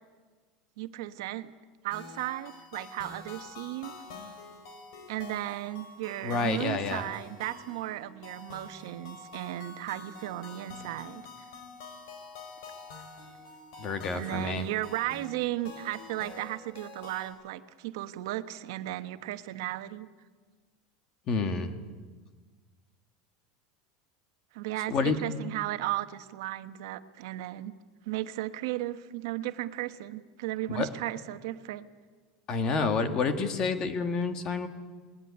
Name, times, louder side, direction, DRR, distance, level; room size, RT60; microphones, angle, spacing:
voice 1, 0.8-1.5 1.8-3.9 5.1-11.2 14.1-20.1 24.5-27.7 28.1-31.9, right 15 dB, 70° right, 10 dB, 1.1 m, -35 dB
sound 1, 1.9-17.3, left 3 dB, 70° left, 5.5 m, -47 dB
voice 2, 6.2-7.1 13.8-14.7 21.3-21.7 24.9-25.2 30.7-30.9 32.5-34.7, left 4 dB, 30° left, 8 dB, 1.8 m, -29 dB
20.0 x 19.0 x 9.9 m, 1.4 s
supercardioid pair, 165°, 2 cm